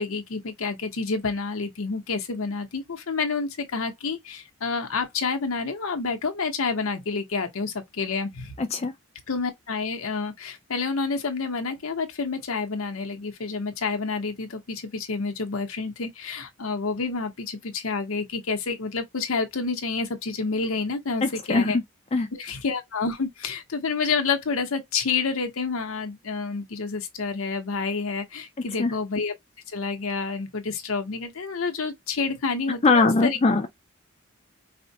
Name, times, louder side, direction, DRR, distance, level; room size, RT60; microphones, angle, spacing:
voice 1, 0.0-8.6 9.3-21.8 22.3-29.3 29.7-33.4, left 4 dB, 70° left, 0.8 m, -29 dB
voice 2, 8.6-8.9 21.2-21.7 22.1-22.3 28.8-28.9 32.8-33.7, left 3 dB, 30° left, 0.4 m, -21 dB
4.2 x 2.1 x 2.6 m
head